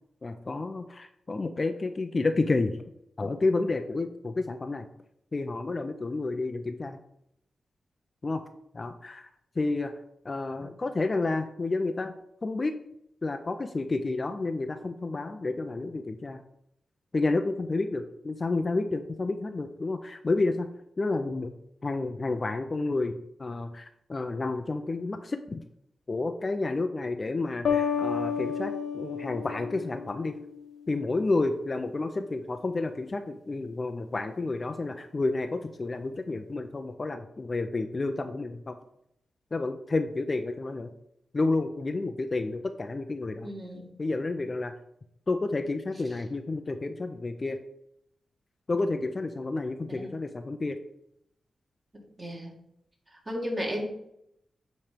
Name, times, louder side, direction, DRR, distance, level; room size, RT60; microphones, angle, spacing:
voice 1, 0.2-2.8 3.2-4.9 5.3-7.0 8.2-8.4 8.7-9.3 9.6-9.9 10.2-12.1 12.4-12.7 13.2-16.4 17.1-20.7 21.0-21.5 21.8-25.6 26.1-30.4 30.9-38.8 39.5-40.9 41.3-43.5 44.0-44.7 45.3-47.6 48.7-50.8, left 3 dB, 35° left, 8 dB, 0.5 m, -30 dB
sound 1, 27.6-30.5, left 7 dB, 80° left, 1.1 m, -30 dB
voice 2, 43.4-43.9 49.9-50.1 52.2-52.5 53.3-53.9, equal, 25° right, 0 dB, 2.0 m, -34 dB
8.7 x 3.2 x 5.1 m, 0.77 s
cardioid pair, 85°, 0 cm